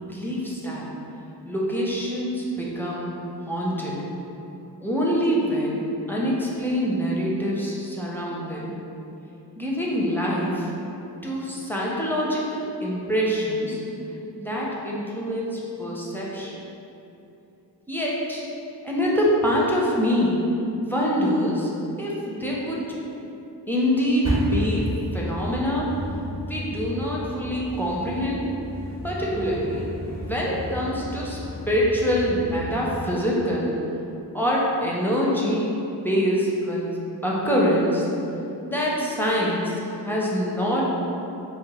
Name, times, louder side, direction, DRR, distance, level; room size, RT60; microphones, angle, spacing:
voice 1, 0.1-0.9 1.4-3.1 3.5-4.0 4.8-8.7 9.6-10.7 11.2-13.8 14.3-16.6 17.9-18.5 18.8-20.4 20.8-21.7 22.0-22.8 23.7-24.9 25.1-25.9 26.4-28.5 29.0-31.4 31.7-33.8 34.3-37.0 37.2-38.0 38.6-40.9, equal, 5° left, -5 dB, 0.5 m, -25 dB
sound 1, 24.2-33.0, equal, 40° right, 0.9 m, -32 dB
2.8 x 2.1 x 4.1 m, 2.9 s
wide cardioid pair, 65°, 42 cm